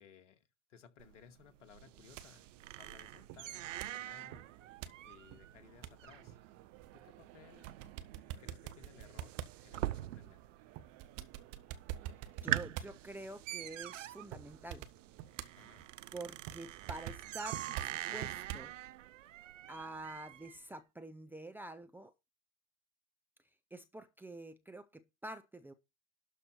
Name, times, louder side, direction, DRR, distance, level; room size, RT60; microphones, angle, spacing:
voice 1, 0.0-2.5 2.7-4.5 5.1-6.4 6.9-7.7 8.4-10.4 15.6-15.9, left 8 dB, 65° left, 2.2 m, -60 dB
sound 1, 1.0-10.6 10.8-11.4 11.8-11.9 12.2-20.6, right 13 dB, 70° right, 0.6 m, -43 dB
sound 2, 1.8-18.7, right 12 dB, 40° right, 1.3 m, -49 dB
voice 2, 12.4-14.9 16.1-18.7 19.7-22.1 23.7-25.7, right 2 dB, 5° right, 0.7 m, -47 dB
12.0 x 4.4 x 6.3 m
hypercardioid pair, 100°, 39 cm